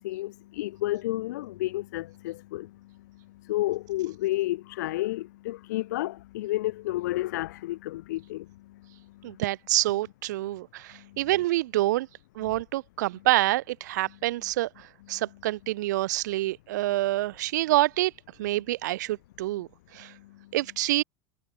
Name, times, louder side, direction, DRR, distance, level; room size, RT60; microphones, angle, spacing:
voice 1, 0.0-9.4 10.9-11.2 15.1-15.2 20.0-20.5, left 17 dB, 90° left, 3.0 m, -32 dB
voice 2, 9.2-12.1 12.4-14.7 15.1-18.1 18.4-19.7 19.9-20.1 20.5-21.0, right 16 dB, 90° right, 5.4 m, -27 dB
supercardioid pair, 115°, 9 cm